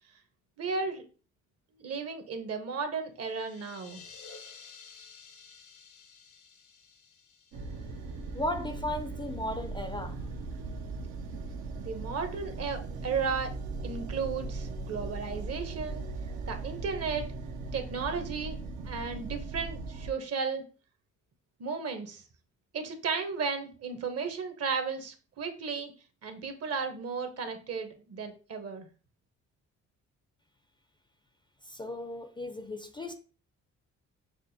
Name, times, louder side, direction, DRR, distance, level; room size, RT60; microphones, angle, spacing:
voice 1, 0.6-1.0 1.8-4.0 11.8-13.5 13.8-16.1 16.5-17.2 17.7-18.6 18.8-20.6 21.6-22.2 22.7-25.9 26.2-28.9, right 5 dB, 55° right, 0.8 m, -34 dB
sound 1, 3.2-8.8, left 5 dB, 80° left, 0.9 m, -52 dB
sound 2, 7.5-20.1, right 3 dB, 80° right, 0.7 m, -38 dB
voice 2, 8.3-10.2 31.7-33.1, left 1 dB, 15° left, 0.4 m, -35 dB
5.9 x 2.1 x 2.7 m
cardioid pair, 90°, 30 cm